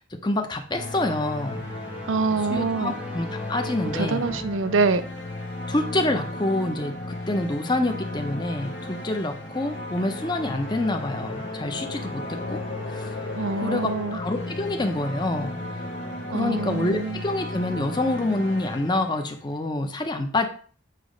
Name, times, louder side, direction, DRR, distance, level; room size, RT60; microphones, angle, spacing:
voice 1, 0.0-1.6 2.5-4.3 5.7-12.6 12.9-13.1 13.5-15.6 16.3-20.5, left 2 dB, 25° left, 0.8 m, -27 dB
sound 1, 0.7-19.6, left 1 dB, 65° left, 1.4 m, -35 dB
sound 2, 1.2-5.9, equal, 5° right, 0.5 m, -42 dB
voice 2, 2.1-2.9 3.9-5.1 13.4-14.2 16.3-17.2, right 4 dB, 85° right, 0.6 m, -25 dB
sound 3, 9.7-16.8, left 3 dB, 85° left, 0.9 m, -39 dB
8.3 x 3.1 x 5.2 m
head